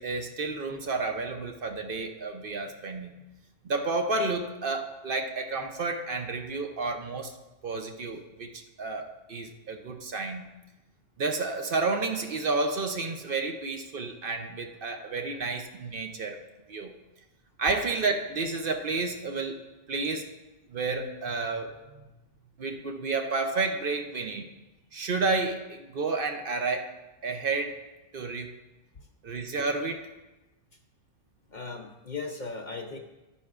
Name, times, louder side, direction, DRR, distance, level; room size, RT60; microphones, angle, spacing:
voice 1, 0.0-3.2 3.6-7.3 7.6-10.5 11.2-16.4 16.7-16.9 17.6-19.6 19.9-20.3 20.7-21.7 22.6-24.5 24.9-27.0 27.2-27.8 28.1-28.6 29.2-30.1, right 3 dB, 55° right, 4 dB, 0.8 m, -31 dB
voice 2, 31.5-33.0, left 4 dB, 50° left, 3 dB, 0.7 m, -38 dB
12.5 x 9.6 x 2.4 m, 1.1 s
omnidirectional pair, 1.2 m